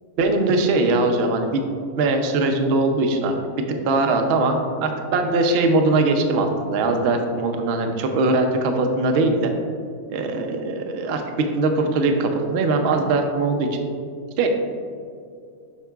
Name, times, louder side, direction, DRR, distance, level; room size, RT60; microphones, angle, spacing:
voice 1, 0.2-1.6 2.0-9.5 10.1-13.9 14.4-14.5, right 2 dB, 55° right, 4 dB, 0.7 m, -21 dB
8.2 x 5.7 x 2.3 m, 2.3 s
omnidirectional pair, 1.6 m